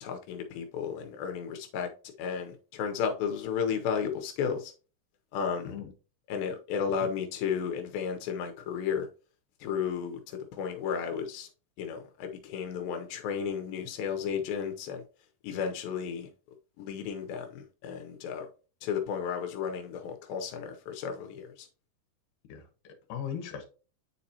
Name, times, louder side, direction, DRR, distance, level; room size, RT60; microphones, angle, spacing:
voice 1, 0.0-1.9 2.2-4.7 5.3-5.9 6.3-9.1 9.6-11.5 11.8-15.0 15.4-16.3 16.8-18.5 18.8-21.7, left 7 dB, 85° left, 2.6 m, -33 dB
voice 2, 22.5-23.7, left 8 dB, 70° left, 2.7 m, -39 dB
9.3 x 4.2 x 2.7 m
omnidirectional pair, 4.0 m